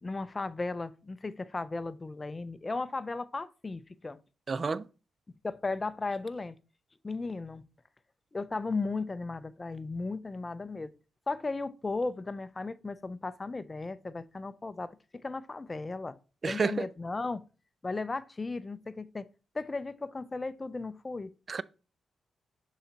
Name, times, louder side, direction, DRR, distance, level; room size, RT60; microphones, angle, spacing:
voice 1, 0.0-4.2 5.4-6.6 7.0-7.6 8.3-10.9 11.3-14.9 15.2-16.2 16.5-17.4 17.8-19.3 19.5-21.3, left 3 dB, 25° left, 0.5 m, -35 dB
voice 2, 4.5-4.9 16.4-16.9 21.5-21.6, right 4 dB, 45° right, 0.3 m, -30 dB
6.5 x 4.0 x 4.0 m
cardioid pair, 80°, 0 cm